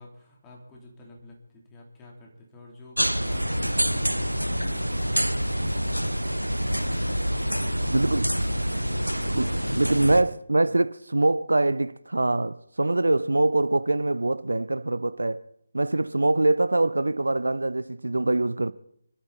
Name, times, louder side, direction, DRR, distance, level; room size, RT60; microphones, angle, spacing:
voice 1, 0.0-7.0 7.4-10.2, left 2 dB, 15° left, 3.6 m, -48 dB
sound 1, 3.0-10.2, equal, 90° right, 1.1 m, -26 dB
voice 2, 7.9-8.2 9.3-15.4 15.7-18.7, right 2 dB, 70° right, 0.5 m, -24 dB
26.5 x 13.0 x 4.2 m
figure-of-eight pair, 150°, 0 cm